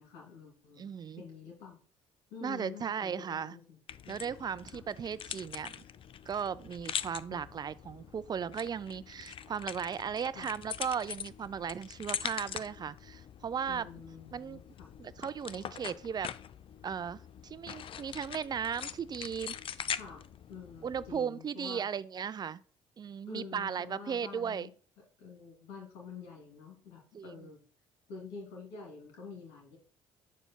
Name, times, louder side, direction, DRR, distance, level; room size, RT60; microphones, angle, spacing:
voice 1, 0.0-0.9 1.2-1.8 2.3-3.8 4.0-4.2 4.7-4.8 7.3-7.4 10.4-10.5 13.7-14.9 20.0-20.2 20.5-21.9 23.3-24.7 25.2-27.6 28.1-29.8, left 5 dB, 70° left, 2.5 m, -48 dB
voice 2, 0.8-1.2 2.4-3.6 4.1-5.8 6.3-13.9 14.3-14.6 15.0-16.3 16.8-19.6 20.8-22.6 23.0-24.7 27.1-27.5, right 7 dB, 25° right, 0.4 m, -36 dB
sound 1, 3.9-21.2, left 9 dB, 35° left, 0.4 m, -43 dB
8.3 x 6.9 x 2.2 m
figure-of-eight pair, 50°, 15 cm